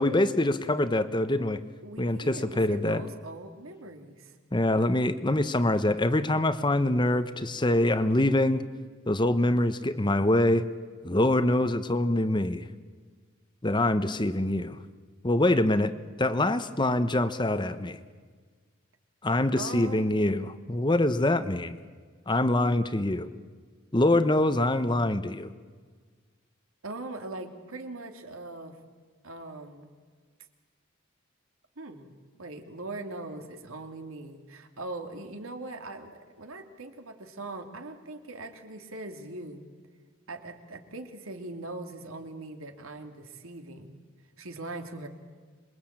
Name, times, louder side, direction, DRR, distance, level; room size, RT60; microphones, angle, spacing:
voice 1, 0.0-1.6 2.0-3.0 4.5-8.6 9.1-10.6 11.0-12.6 13.6-14.8 15.2-15.9 16.2-18.0 19.2-21.8 22.3-23.3 23.9-25.5, left 1 dB, 20° left, 11 dB, 0.9 m, -24 dB
voice 2, 1.8-4.4 19.5-20.2 26.8-28.8 29.2-29.9 31.8-32.1 32.4-39.6 40.3-43.9 44.4-45.1, right 2 dB, 80° right, 5 dB, 2.8 m, -41 dB
27.0 x 22.0 x 8.8 m, 1.5 s
head